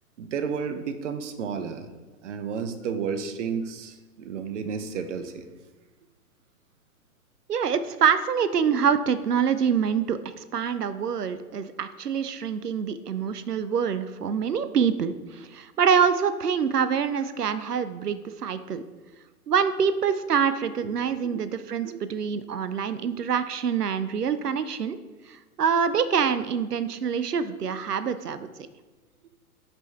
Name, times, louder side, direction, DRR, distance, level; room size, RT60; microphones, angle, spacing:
voice 1, 0.2-1.9 2.2-5.5 20.8-20.9 21.3-21.4 21.8-22.0, right 6 dB, 50° right, 9 dB, 0.8 m, -32 dB
voice 2, 7.5-18.8 19.5-25.0 25.3-28.5, right 7 dB, 85° right, 12 dB, 0.6 m, -25 dB
6.0 x 5.1 x 4.4 m, 1.2 s
figure-of-eight pair, 110°, 46 cm